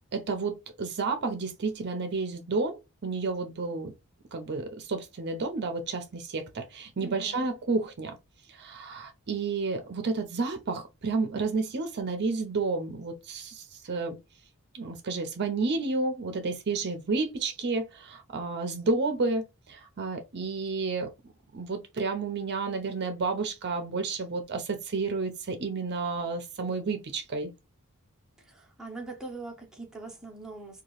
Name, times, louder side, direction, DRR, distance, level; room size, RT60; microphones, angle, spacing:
voice 1, 0.1-3.9 4.3-8.2 8.5-14.2 14.7-21.1 21.5-27.5, right 3 dB, 50° right, 0.6 m, -31 dB
voice 2, 7.0-7.5 28.4-30.8, right 3 dB, 5° right, 0.8 m, -42 dB
2.8 x 2.3 x 3.0 m
head